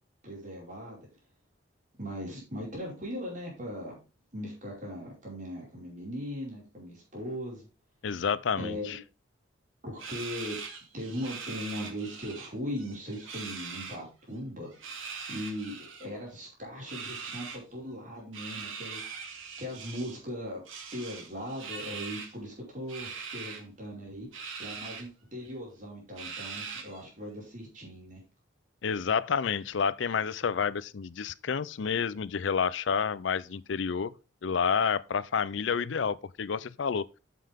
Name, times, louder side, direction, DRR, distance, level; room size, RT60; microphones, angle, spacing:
voice 1, 0.2-1.1 2.0-4.0 4.3-7.7 8.6-9.0 9.8-10.6 10.9-14.9 15.3-19.0 19.6-20.6 20.9-28.2, equal, 40° right, 4.9 m, -39 dB
voice 2, 8.0-9.0 28.8-34.1 34.4-37.0, left 6 dB, 70° left, 0.5 m, -29 dB
sound 1, 10.0-12.5 12.8-14.0 14.7-16.1 16.9-17.6 18.3-20.2 20.7-22.3 22.9-23.6 24.3-25.0 25.5-25.6 26.2-27.0, right 5 dB, 90° right, 2.5 m, -41 dB
9.2 x 7.6 x 3.5 m
head